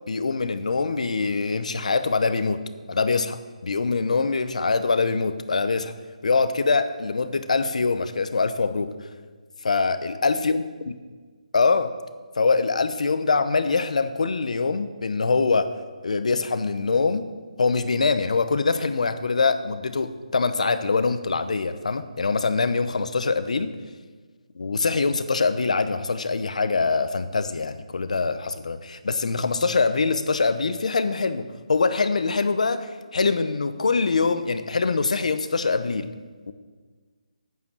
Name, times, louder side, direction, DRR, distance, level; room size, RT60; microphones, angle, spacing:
voice 1, 0.1-2.6 2.9-5.9 6.2-8.9 9.6-10.6 11.5-11.9 12.4-15.7 16.0-17.3 17.6-23.7 24.5-36.1 36.5-36.6, left 4 dB, 65° left, 11 dB, 0.9 m, -24 dB
9.8 x 9.3 x 6.2 m, 1.5 s
hypercardioid pair, 165°, 4 cm